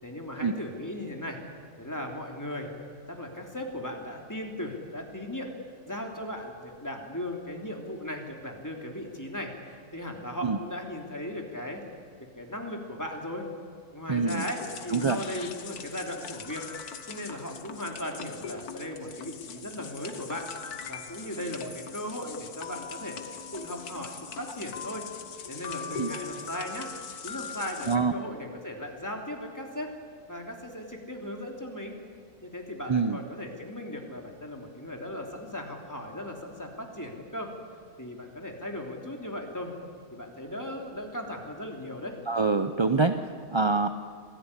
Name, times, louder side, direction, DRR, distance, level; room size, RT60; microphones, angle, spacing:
voice 1, 0.0-1.4 1.8-2.7 3.1-5.5 5.8-11.8 12.4-13.5 13.9-16.7 17.1-20.5 20.9-23.2 23.5-25.1 25.5-26.9 27.2-29.9 30.3-32.0 32.4-37.5 38.0-39.7 40.1-42.2, left 1 dB, 10° left, 1 dB, 3.3 m, -37 dB
voice 2, 14.1-14.4 14.9-15.2 26.0-26.1 27.9-28.1 32.9-33.2 42.3-43.2 43.5-43.9, right 4 dB, 30° right, 8 dB, 0.5 m, -25 dB
sound 1, 14.3-28.0, left 6 dB, 80° left, 1.9 m, -41 dB
25.5 x 17.0 x 9.9 m, 2.1 s
omnidirectional pair, 1.6 m